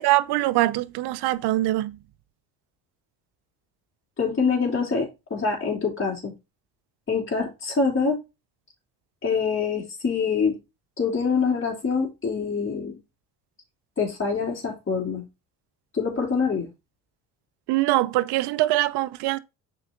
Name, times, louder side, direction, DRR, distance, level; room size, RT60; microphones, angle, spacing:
voice 1, 0.0-2.0 17.7-19.4, right 17 dB, 70° right, 0.8 m, -23 dB
voice 2, 4.2-6.3 7.1-8.2 9.2-10.5 11.0-13.0 14.0-15.2 15.9-16.7, left 5 dB, 30° left, 3.5 m, -25 dB
7.0 x 5.0 x 3.8 m
supercardioid pair, 70°, 42 cm